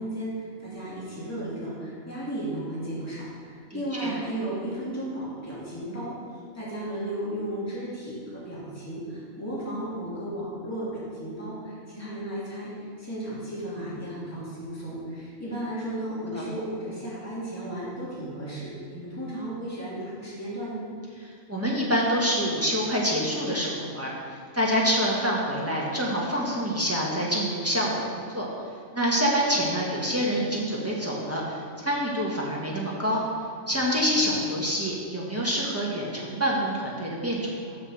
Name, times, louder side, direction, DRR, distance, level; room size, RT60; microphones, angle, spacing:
voice 1, 0.0-6.2 6.5-20.8, right 1 dB, 10° left, -9 dB, 2.4 m, -34 dB
voice 2, 3.7-4.1 15.4-15.6 16.3-16.5 21.5-24.1 24.5-28.5 28.9-33.2 33.7-37.8, equal, 10° right, -4 dB, 1.3 m, -26 dB
6.5 x 6.1 x 6.4 m, 2.3 s
omnidirectional pair, 1.4 m